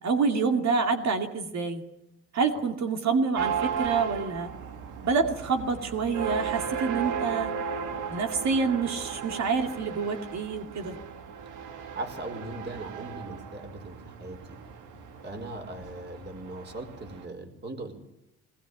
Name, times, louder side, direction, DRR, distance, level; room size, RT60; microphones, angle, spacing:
voice 1, 0.0-1.8 2.3-4.5 5.0-7.5 8.1-11.0, right 5 dB, 65° right, 5 dB, 2.5 m, -27 dB
sound 1, 3.3-17.2, right 7 dB, 90° right, 2.5 m, -36 dB
voice 2, 11.9-14.6 15.2-17.9, right 2 dB, 35° right, 5 dB, 4.8 m, -39 dB
19.5 x 19.5 x 9.1 m, 0.81 s
cardioid pair, 90°, 30 cm